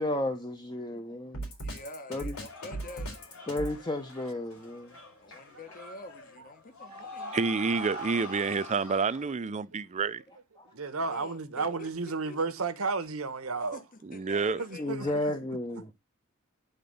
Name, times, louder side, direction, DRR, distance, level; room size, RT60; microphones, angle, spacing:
voice 1, 0.0-1.5 2.1-2.3 3.5-4.9 14.8-15.9, left 1 dB, 20° left, 0.8 m, -32 dB
Drum kit, 1.3-3.8, right 2 dB, 90° left, 4.0 m, -37 dB
voice 2, 1.6-3.1 5.2-7.6 11.1-11.9 12.3-12.6 13.7-13.8 14.1-15.2, left 2 dB, 40° left, 1.2 m, -46 dB
sound 1, 2.3-9.3, left 1 dB, 75° left, 3.7 m, -44 dB
voice 3, 7.3-10.2 14.0-14.6, right 4 dB, 30° right, 0.4 m, -29 dB
voice 4, 10.7-13.8 14.6-15.1, right 4 dB, 70° right, 1.0 m, -32 dB
10.5 x 4.0 x 5.3 m
head